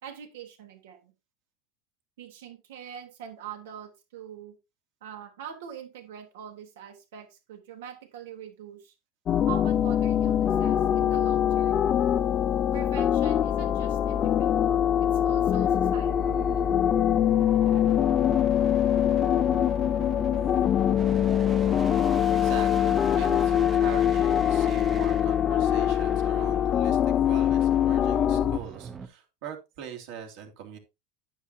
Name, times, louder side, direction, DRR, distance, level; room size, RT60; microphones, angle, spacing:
voice 1, 0.0-1.1 2.2-4.5 5.0-8.9 9.5-11.8 12.7-16.5, right 9 dB, 85° right, 5 dB, 3.3 m, -43 dB
sound 1, 9.3-28.6, left 10 dB, 30° left, 0.6 m, -23 dB
sound 2, 15.5-29.1, right 5 dB, 20° right, 0.7 m, -41 dB
voice 2, 22.3-30.8, right 8 dB, 55° right, 3 dB, 2.9 m, -42 dB
9.9 x 9.6 x 2.8 m, 0.25 s
supercardioid pair, 160°, 0 cm